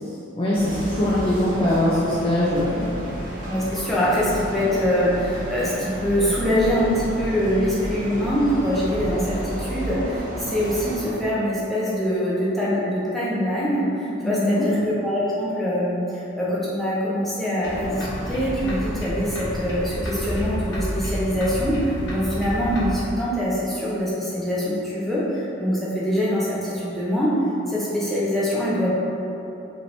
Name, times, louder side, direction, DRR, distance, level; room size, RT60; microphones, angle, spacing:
voice 1, 0.4-3.0 14.2-14.7, left 1 dB, 25° left, -7 dB, 0.4 m, -22 dB
sound 1, 0.6-11.1, right 1 dB, 40° right, 0.9 m, -32 dB
voice 2, 3.4-27.3 27.7-28.9, equal, ahead, -9 dB, 0.7 m, -24 dB
sound 2, 17.6-22.9, equal, 60° left, 0.9 m, -30 dB
4.9 x 3.0 x 3.3 m, 3.0 s
head